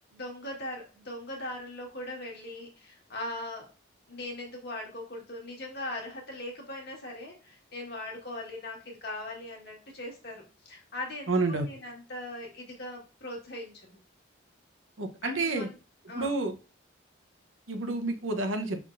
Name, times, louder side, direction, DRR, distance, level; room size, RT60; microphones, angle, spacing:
voice 1, 0.1-3.7 4.1-14.0 15.2-15.8 16.1-16.4, left 1 dB, 55° left, 0 dB, 1.6 m, -40 dB
voice 2, 11.3-11.7 15.0-15.7 16.1-16.5 17.7-18.8, right 3 dB, 90° right, 6 dB, 0.8 m, -29 dB
5.6 x 3.6 x 2.5 m, 0.33 s
head